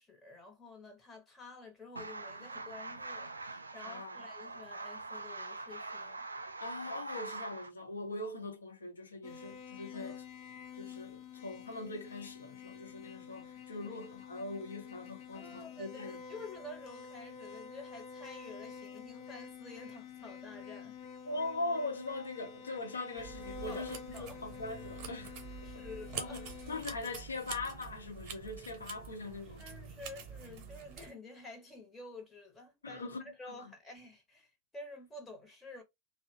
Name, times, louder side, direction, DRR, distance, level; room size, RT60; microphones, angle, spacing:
voice 1, 0.0-6.3 9.9-10.2 13.8-14.0 15.3-20.9 23.7-24.4 25.6-26.5 29.6-33.0 33.4-35.8, left 2 dB, 15° left, 0.8 m, -50 dB
sound 1, 2.0-7.7, right 3 dB, 80° right, 0.3 m, -43 dB
voice 2, 3.8-4.2 6.6-10.2 10.7-16.2 21.2-25.4 25.7-25.8 26.2-29.6 32.8-33.7, left 2 dB, 75° left, 0.7 m, -41 dB
sound 2, 9.2-26.8, left 7 dB, 40° left, 0.4 m, -48 dB
sound 3, 23.2-31.1, right 6 dB, 40° right, 0.8 m, -47 dB
2.7 x 2.0 x 2.6 m
figure-of-eight pair, 90°, 0 cm